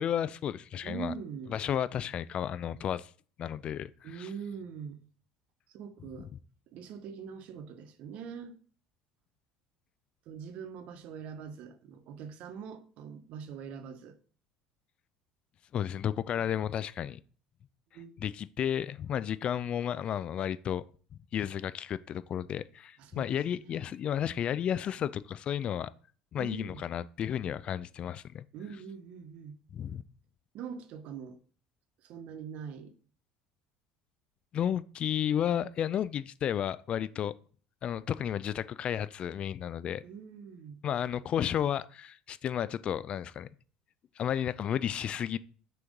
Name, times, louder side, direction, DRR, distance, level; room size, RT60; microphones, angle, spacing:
voice 1, 0.0-1.1 1.5-3.1 3.4-4.3 15.7-17.2 18.2-20.8 21.3-25.9 26.3-28.4 29.7-30.0 34.5-37.3 37.8-40.0 40.8-43.5 44.2-45.4, left 9 dB, 45° left, 0.4 m, -32 dB
voice 2, 0.8-1.6 4.0-5.0 5.7-6.3 6.7-8.6 10.3-14.2 17.9-18.2 23.0-23.8 26.4-26.8 28.5-29.6 30.5-31.4 32.0-32.9 40.0-40.8, right 7 dB, 60° right, 1.0 m, -43 dB
6.2 x 3.1 x 5.1 m
hypercardioid pair, 75°, 3 cm